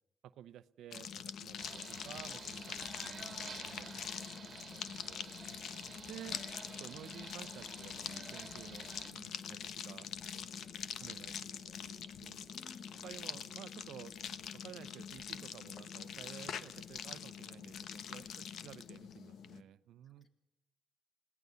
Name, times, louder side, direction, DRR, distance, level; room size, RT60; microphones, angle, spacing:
voice 1, 0.2-5.3 6.1-6.4 6.7-10.5 11.0-12.4 13.0-14.1 14.5-18.3 18.6-20.3, right 11 dB, 80° right, 14 dB, 0.8 m, -53 dB
sound 1, 0.9-19.6, left 8 dB, 70° left, 1.1 m, -45 dB
sound 2, 1.6-9.1, right 5 dB, 40° right, 2.0 m, -51 dB
voice 2, 12.4-13.1 18.1-18.3 20.0-20.3, left 3 dB, 40° left, 5 dB, 3.7 m, -60 dB
22.0 x 18.0 x 7.1 m, 0.91 s
cardioid pair, 90°, 0 cm